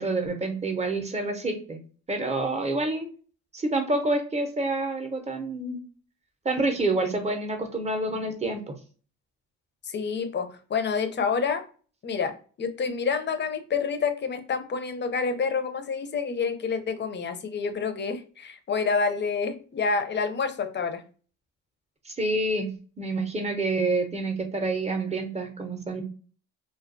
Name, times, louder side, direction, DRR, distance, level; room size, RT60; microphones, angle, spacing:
voice 1, 0.0-1.8 2.1-3.1 3.5-5.8 6.4-8.7 22.1-22.7 23.0-26.0, right 2 dB, 20° right, 5 dB, 0.6 m, -28 dB
voice 2, 9.9-11.6 12.0-21.0, left 5 dB, 35° left, 8 dB, 0.5 m, -28 dB
2.3 x 2.2 x 2.5 m, 0.39 s
cardioid pair, 90°, 30 cm